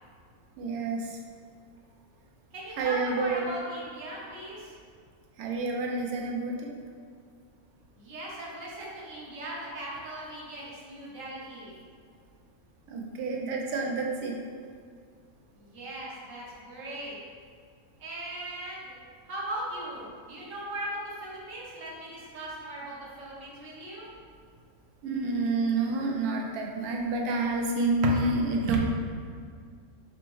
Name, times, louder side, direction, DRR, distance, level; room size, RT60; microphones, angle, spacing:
voice 1, 0.6-1.2 2.8-3.5 5.4-6.7 12.9-14.3 25.0-28.8, right 3 dB, 90° right, 0 dB, 1.1 m, -28 dB
voice 2, 2.5-4.7 8.0-11.8 15.5-17.2 18.0-18.9 19.3-24.1, right 1 dB, 65° right, -5 dB, 1.3 m, -39 dB
4.0 x 3.3 x 3.0 m, 2.1 s
omnidirectional pair, 1.5 m